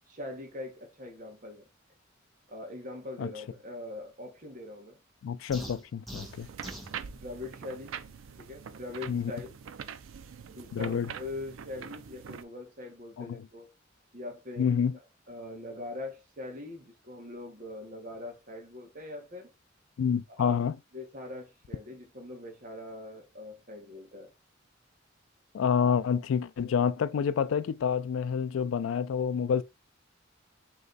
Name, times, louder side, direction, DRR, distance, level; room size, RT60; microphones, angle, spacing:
voice 1, 0.1-1.6 2.5-5.0 7.1-8.0 8.4-9.6 10.5-13.7 14.1-14.8 15.3-19.5 20.4-20.6 20.9-24.3, left 2 dB, 45° right, 1.3 m, -42 dB
voice 2, 5.2-6.5 9.1-9.3 10.7-11.1 13.2-13.4 14.6-14.9 20.0-20.8 25.5-29.6, left 7 dB, 90° left, 0.3 m, -28 dB
sound 1, 5.5-7.0, equal, ahead, 0.8 m, -43 dB
sound 2, 6.2-12.4, right 7 dB, 85° right, 0.4 m, -44 dB
3.3 x 3.1 x 4.0 m
head